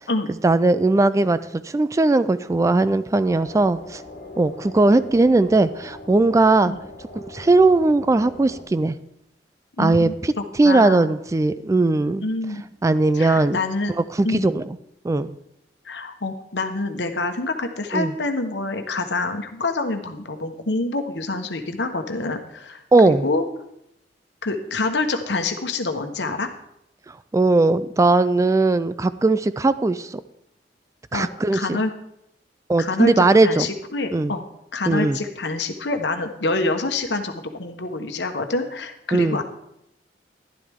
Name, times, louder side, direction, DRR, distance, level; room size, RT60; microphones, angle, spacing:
voice 1, 0.4-4.0 4.4-6.7 7.1-9.0 9.8-10.3 10.6-12.3 12.8-13.6 14.2-14.6 15.0-15.3 17.9-18.1 22.9-23.2 27.3-30.2 31.1-31.8 32.7-33.7 34.1-34.3 34.9-35.2 39.1-39.4, right 2 dB, 20° right, 14 dB, 0.3 m, -18 dB
sound 1, 3.2-8.6, left 2 dB, 55° left, 1.8 m, -40 dB
voice 2, 9.8-10.1 10.6-11.1 12.2-12.6 13.1-13.9 14.2-14.6 15.8-23.4 24.4-26.5 31.1-31.9 32.8-34.4 34.7-39.4, left 3 dB, 75° left, 6 dB, 1.2 m, -26 dB
11.5 x 11.5 x 3.6 m, 0.78 s
head